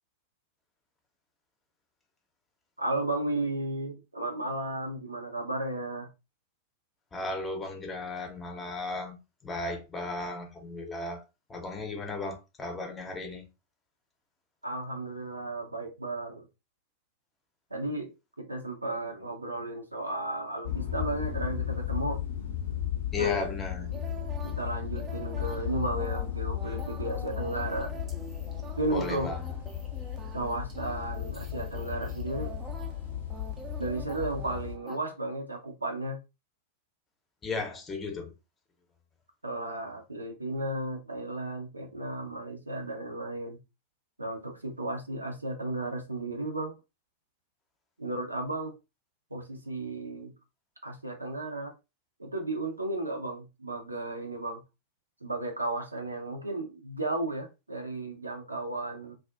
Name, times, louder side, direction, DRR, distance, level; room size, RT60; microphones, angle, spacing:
voice 1, 2.8-6.1 14.6-16.5 17.7-18.1 18.4-22.2 23.2-23.4 24.4-27.9 28.8-29.4 30.3-32.6 33.8-36.2 39.4-43.6 44.2-46.7 48.0-48.7 49.3-50.3 50.8-51.7 52.2-54.6 55.2-59.1, right 2 dB, 85° right, 0.5 m, -34 dB
voice 2, 7.1-11.2 11.5-13.5 23.1-23.9 28.9-29.4 37.4-38.3, left 3 dB, 20° left, 0.7 m, -35 dB
sound 1, 20.6-34.7, left 11 dB, 65° left, 0.6 m, -35 dB
sound 2, 23.9-35.0, right 5 dB, 20° right, 0.4 m, -46 dB
2.4 x 2.3 x 2.3 m
figure-of-eight pair, 90°, 0 cm